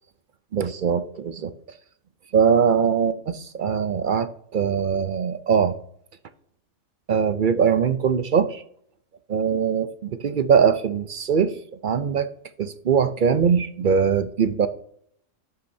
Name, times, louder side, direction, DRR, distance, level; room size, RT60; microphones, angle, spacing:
voice 1, 0.5-1.5 2.3-5.8 7.1-8.6 9.3-12.3 12.6-14.7, right 6 dB, 55° right, 11 dB, 0.6 m, -21 dB
11.5 x 8.6 x 2.7 m, 0.65 s
omnidirectional pair, 1.3 m